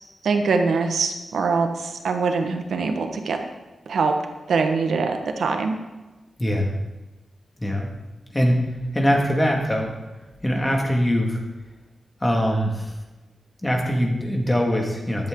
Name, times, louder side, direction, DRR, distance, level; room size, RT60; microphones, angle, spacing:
voice 1, 0.2-3.4 3.9-4.1 4.5-5.7, right 4 dB, 80° right, 5 dB, 1.6 m, -23 dB
voice 2, 6.4-6.7 7.6-7.9 8.3-10.0 10.4-11.4 12.2-12.9 13.6-15.3, equal, 15° left, 1 dB, 2.3 m, -22 dB
14.0 x 12.0 x 4.0 m, 1.1 s
wide cardioid pair, 150°, 0 cm